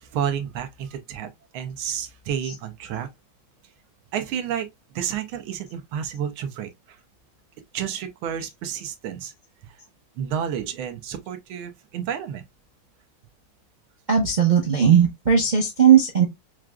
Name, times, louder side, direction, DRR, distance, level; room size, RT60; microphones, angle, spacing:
voice 1, 0.0-3.1 4.1-4.7 4.9-7.0 7.7-9.3 9.6-9.8 10.2-12.4, right 8 dB, 85° right, 1.6 m, -30 dB
voice 2, 14.1-16.2, right 8 dB, 55° right, 0.5 m, -17 dB
6.1 x 2.4 x 2.2 m
omnidirectional pair, 2.2 m